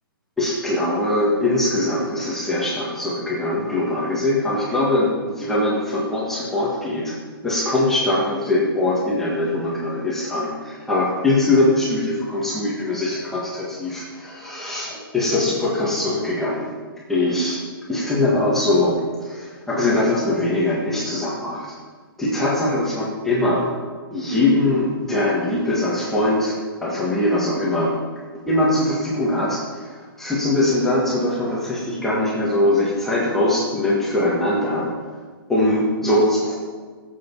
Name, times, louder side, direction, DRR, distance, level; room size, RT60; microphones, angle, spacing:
voice 1, 0.4-7.1 7.4-16.7 17.1-17.6 17.9-21.7 22.2-23.7 24.1-27.9 28.5-34.9 35.5-36.6, left 1 dB, 5° left, -7 dB, 1.6 m, -22 dB
18.5 x 7.9 x 5.5 m, 1.5 s
hypercardioid pair, 180°, 13 cm